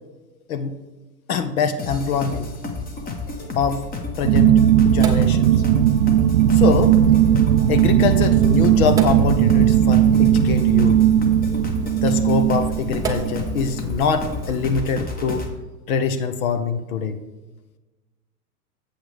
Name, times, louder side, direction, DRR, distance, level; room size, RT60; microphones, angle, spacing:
voice 1, 1.3-2.5 3.5-3.8 4.2-5.5 6.5-7.0 7.7-11.0 12.0-15.5 15.9-17.1, left 5 dB, 60° left, 10 dB, 0.9 m, -23 dB
sound 1, 1.8-15.5, left 3 dB, 20° left, 1.1 m, -32 dB
sound 2, 4.2-13.7, right 10 dB, 80° right, 0.6 m, -17 dB
Sink (filling or washing), 4.9-14.8, right 4 dB, 10° right, 0.4 m, -35 dB
8.1 x 8.0 x 3.4 m, 1.2 s
hypercardioid pair, 110°, 48 cm